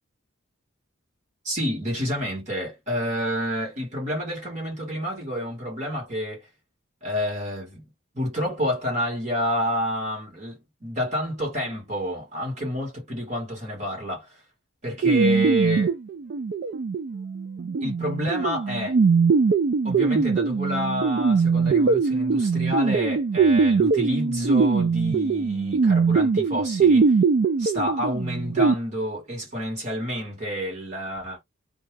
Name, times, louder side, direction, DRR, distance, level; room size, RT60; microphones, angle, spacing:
voice 1, 1.4-6.5 7.0-7.8 8.1-14.4 14.8-16.0 17.8-19.0 19.8-27.2 27.6-31.4, equal, 35° right, 1.5 m, -29 dB
sound 1, 15.0-28.7, right 5 dB, 50° right, 0.3 m, -21 dB
2.6 x 2.3 x 3.2 m
head